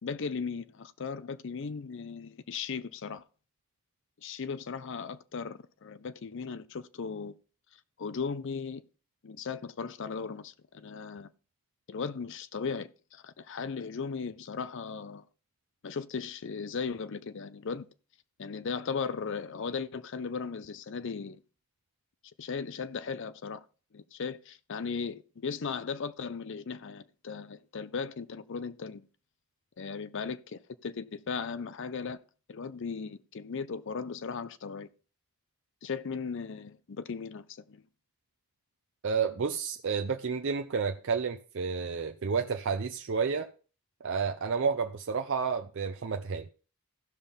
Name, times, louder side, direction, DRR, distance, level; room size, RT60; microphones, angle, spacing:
voice 1, 0.0-3.2 4.2-7.3 8.0-8.8 9.2-11.3 11.9-15.3 15.8-17.9 18.4-21.4 22.4-23.6 23.9-29.1 29.8-32.2 32.5-34.9 35.8-37.8, left 5 dB, 55° left, 0.5 m, -37 dB
voice 2, 39.0-43.5 44.0-46.5, right 5 dB, 55° right, 0.5 m, -30 dB
15.5 x 5.6 x 3.5 m
head